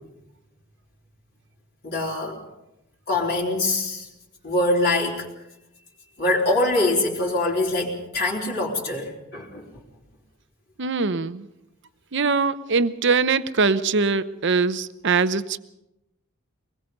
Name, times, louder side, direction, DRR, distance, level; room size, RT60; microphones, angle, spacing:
voice 1, 1.8-2.4 3.1-4.1 4.4-5.3 6.2-9.7, left 2 dB, 50° left, -4 dB, 4.0 m, -24 dB
voice 2, 10.8-11.5 12.1-15.6, right 4 dB, 55° right, 13 dB, 0.8 m, -22 dB
23.5 x 20.5 x 5.3 m, 0.89 s
head